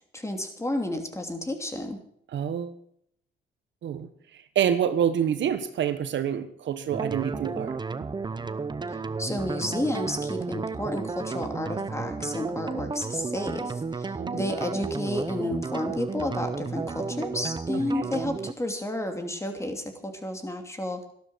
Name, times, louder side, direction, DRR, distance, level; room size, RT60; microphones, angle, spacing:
voice 1, 0.1-2.0 8.9-21.1, left 1 dB, 15° left, 5 dB, 2.8 m, -31 dB
voice 2, 2.3-2.8 3.8-4.1 4.5-7.8 14.2-14.5, right 9 dB, 70° right, 10 dB, 1.4 m, -27 dB
sound 1, 6.9-18.5, right 4 dB, 20° right, 0.7 m, -33 dB
13.5 x 12.0 x 6.3 m, 0.68 s
cardioid pair, 90°, 20 cm